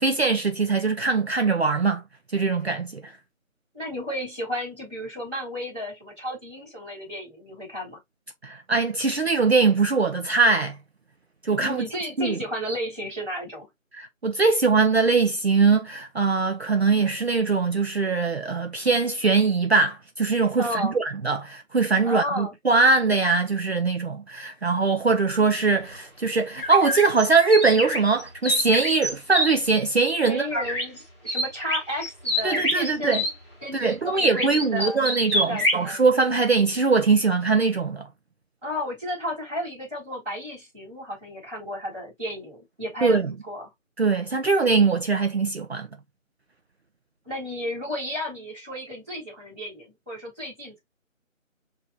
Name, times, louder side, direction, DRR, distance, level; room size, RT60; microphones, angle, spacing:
voice 1, 0.0-2.0 2.3-3.1 8.4-10.8 11.4-11.8 12.2-12.4 13.9-30.6 32.4-33.2 33.7-38.1 43.0-43.3 44.0-45.9, right 4 dB, 55° right, 0.6 m, -22 dB
voice 2, 3.7-8.0 11.6-13.7 20.6-21.0 22.0-22.5 30.2-33.3 33.6-36.0 38.6-43.7 47.2-50.8, equal, 5° right, 1.8 m, -33 dB
sound 1, 26.6-29.5 30.6-31.0 31.3-33.3 34.3-35.8, equal, 20° left, 1.8 m, -26 dB
6.0 x 2.8 x 2.7 m
figure-of-eight pair, 175°, 40 cm